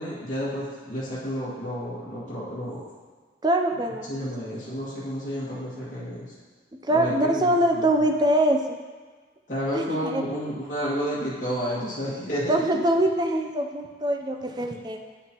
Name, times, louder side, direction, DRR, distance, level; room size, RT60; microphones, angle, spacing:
voice 1, 0.0-2.8 4.1-6.3 6.9-7.4 7.7-7.8 9.5-12.8, equal, 45° left, -10 dB, 2.1 m, -31 dB
voice 2, 3.4-4.1 6.9-8.6 9.7-10.2 12.5-15.0, right 1 dB, 25° right, 4 dB, 0.6 m, -23 dB
8.6 x 8.5 x 3.0 m, 1.4 s
head